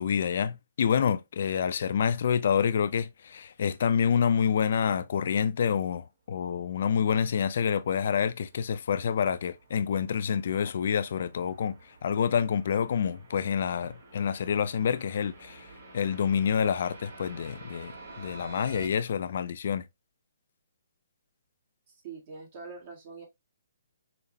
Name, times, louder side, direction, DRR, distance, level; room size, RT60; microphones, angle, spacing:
voice 1, 0.0-11.8 12.0-15.7 15.9-17.9 18.2-19.8, left 7 dB, 60° left, 0.4 m, -27 dB
sound 1, 8.3-18.9, right 3 dB, 60° right, 1.5 m, -50 dB
voice 2, 21.9-23.3, right 4 dB, 40° right, 1.4 m, -44 dB
5.1 x 2.1 x 2.6 m
hypercardioid pair, 145°, 0 cm